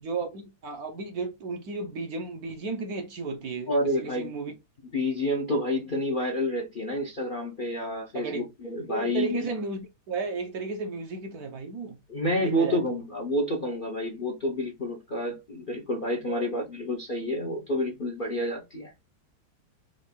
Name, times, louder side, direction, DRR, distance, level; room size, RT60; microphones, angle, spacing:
voice 1, 0.0-3.7 4.0-4.5 8.1-8.5 8.9-12.0 12.4-13.0 16.3-16.5, right 3 dB, 60° right, 1.2 m, -34 dB
voice 2, 3.7-4.3 4.9-9.5 12.1-18.9, left 1 dB, 45° left, 0.7 m, -29 dB
4.6 x 2.5 x 4.3 m
omnidirectional pair, 2.1 m